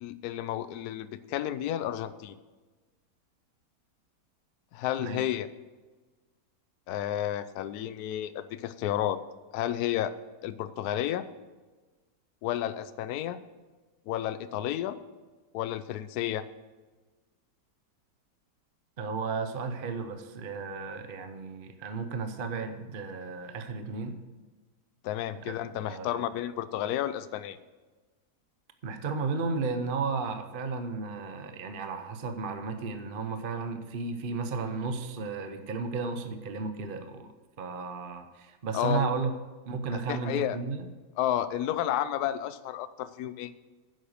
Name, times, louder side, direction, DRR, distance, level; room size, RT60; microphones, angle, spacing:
voice 1, 0.0-2.4 4.7-5.5 6.9-9.2 9.5-10.1 10.4-11.2 12.4-13.4 14.1-15.0 15.5-16.5 25.0-27.6 38.7-39.1 40.1-40.6 41.2-43.5, left 12 dB, 70° left, 13 dB, 1.1 m, -31 dB
voice 2, 19.0-24.2 25.5-26.2 28.8-37.3 37.6-39.4 39.7-40.9, right 4 dB, 40° right, 8 dB, 0.8 m, -34 dB
10.0 x 8.0 x 6.5 m, 1.3 s
omnidirectional pair, 1.8 m